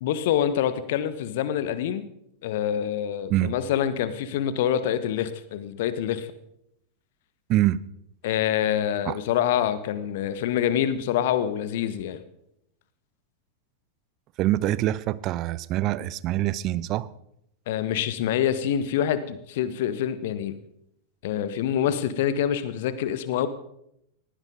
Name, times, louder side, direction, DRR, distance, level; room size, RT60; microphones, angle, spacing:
voice 1, 0.0-2.1 2.4-6.3 8.2-12.2 17.7-20.5 21.2-23.5, left 10 dB, 55° left, 1.3 m, -26 dB
voice 2, 14.4-17.1, right 14 dB, 35° right, 0.6 m, -25 dB
18.5 x 16.5 x 3.9 m
figure-of-eight pair, 90°, 0 cm